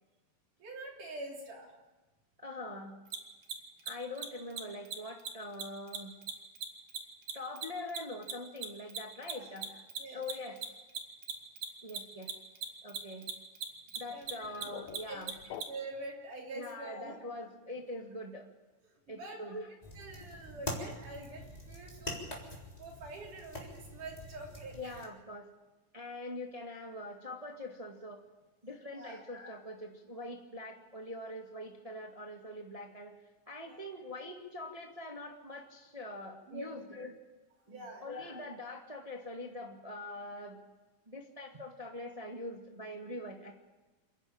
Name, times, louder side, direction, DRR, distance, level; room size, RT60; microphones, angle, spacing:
voice 1, 0.6-1.7 9.2-9.4 10.0-10.2 14.1-14.3 15.1-15.3 15.7-17.2 19.1-19.4 19.9-22.2 22.8-25.0 28.9-29.2 33.6-33.8 36.5-36.7 37.7-38.1, right 2 dB, 70° right, -1 dB, 4.8 m, -45 dB
voice 2, 2.4-2.9 3.8-6.1 7.3-10.6 11.8-12.3 12.8-13.2 14.0-15.6 16.5-18.5 19.1-19.8 24.7-25.5 25.9-28.2 28.6-33.1 33.5-37.1 37.7-40.6 41.0-43.5, left 1 dB, 15° right, 1 dB, 1.4 m, -43 dB
Mechanisms, 3.1-3.2 3.4-3.5 3.8-3.9 4.2-4.3 4.5-4.6 4.9-5.0 5.2-5.3 5.6-8.3 8.6-15.6, right 8 dB, 85° right, 3.5 m, -38 dB
sound 1, 14.2-16.1, left 10 dB, 65° left, 2.0 m, -48 dB
sound 2, 19.8-25.0, left 1 dB, 10° left, 3.6 m, -44 dB
28.5 x 11.0 x 8.9 m, 1.2 s
omnidirectional pair, 3.8 m